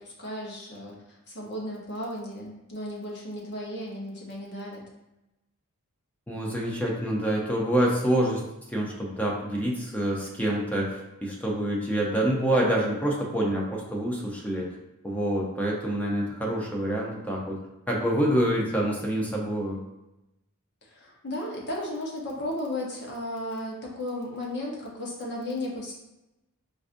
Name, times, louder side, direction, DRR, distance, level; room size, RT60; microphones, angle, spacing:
voice 1, 0.0-4.8 20.8-25.9, left 1 dB, 50° left, -2 dB, 0.9 m, -35 dB
voice 2, 6.3-14.7 15.0-17.6 17.9-19.8, right 1 dB, 5° left, -2 dB, 0.6 m, -27 dB
4.8 x 2.5 x 2.5 m, 0.94 s
head